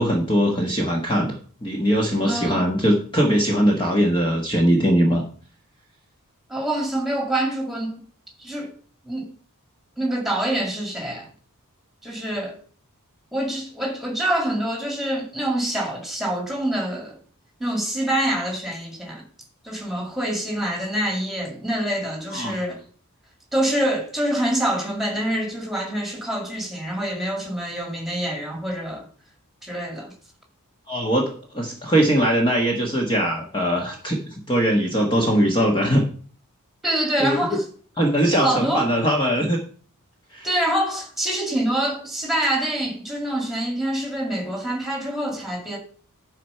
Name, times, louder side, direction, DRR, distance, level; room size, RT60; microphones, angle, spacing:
voice 1, 0.0-1.3 1.6-5.2 22.3-22.5 30.9-36.0 37.2-37.6 38.0-39.6 40.3-40.5, equal, 20° left, 1.3 m, -21 dB
voice 2, 2.2-2.6 6.5-8.0 8.4-8.7 9.0-9.3 10.0-11.3 12.0-12.6 13.3-17.2 17.6-19.2 19.6-22.8 23.5-29.1 29.6-30.1 36.8-37.6 38.4-38.9 40.4-45.8, right 1 dB, ahead, 2.1 m, -26 dB
11.0 x 4.5 x 5.6 m
head